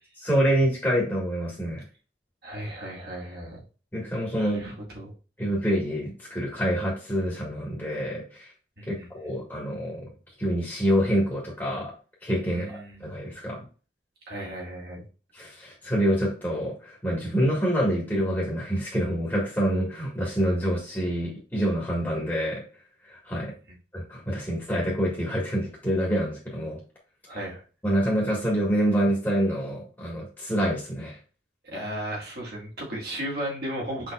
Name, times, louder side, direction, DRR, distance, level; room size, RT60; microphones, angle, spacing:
voice 1, 0.2-1.8 3.9-4.7 5.4-8.5 8.9-10.1 10.4-11.9 12.2-13.6 15.3-22.6 23.1-23.5 23.9-26.8 27.8-31.2, equal, 10° left, -4 dB, 1.5 m, -26 dB
voice 2, 2.4-3.6 4.4-5.1 8.8-9.1 12.5-13.0 14.3-15.0 27.3-27.6 31.6-34.1, right 1 dB, 55° right, -3 dB, 1.8 m, -35 dB
6.3 x 3.4 x 2.3 m, 0.36 s
head